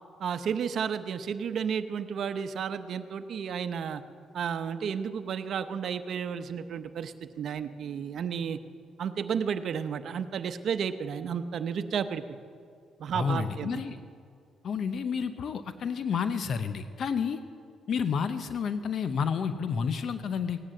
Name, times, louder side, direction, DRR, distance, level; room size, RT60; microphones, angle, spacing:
voice 1, 0.2-4.0 4.3-8.6 9.0-12.2 13.0-13.8, right 7 dB, 65° right, 10 dB, 0.8 m, -32 dB
voice 2, 13.1-14.0 14.6-17.4 17.9-20.7, left 6 dB, 60° left, 11 dB, 0.7 m, -30 dB
17.0 x 10.0 x 7.8 m, 2.3 s
cardioid pair, 90°, 0 cm